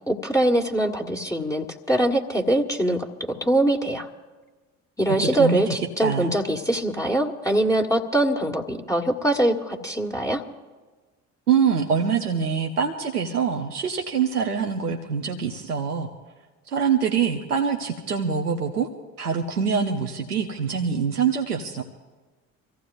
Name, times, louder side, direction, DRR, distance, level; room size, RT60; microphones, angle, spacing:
voice 1, 0.1-4.1 5.0-10.4, right 1 dB, 5° left, 1 dB, 1.7 m, -23 dB
voice 2, 5.1-5.7 6.0-6.4 11.5-16.1 16.7-18.9 19.2-21.8, right 6 dB, 85° right, 2 dB, 1.1 m, -24 dB
26.5 x 15.5 x 2.6 m, 1.3 s
figure-of-eight pair, 55°, 44 cm